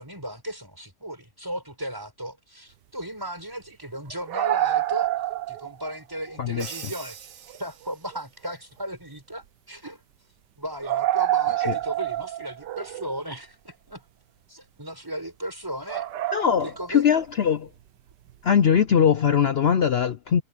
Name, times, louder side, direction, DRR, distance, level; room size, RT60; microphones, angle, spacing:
voice 1, 0.0-5.1 5.5-7.2 7.5-10.0 10.6-14.0 14.5-16.1 16.4-17.1, right 1 dB, 10° right, 5.6 m, -36 dB
sound 1, 4.1-5.9 6.3-6.4 7.5-7.6 8.1-8.2 8.5-8.6 10.8-13.1 15.9-16.9 18.3-18.4, right 13 dB, 80° right, 1.5 m, -27 dB
voice 2, 6.4-6.7 11.7-11.8 16.3-17.7 18.4-20.4, left 8 dB, 80° left, 0.5 m, -21 dB
Crash cymbal, 6.6-8.3, right 9 dB, 55° right, 1.2 m, -42 dB
omnidirectional pair, 1.8 m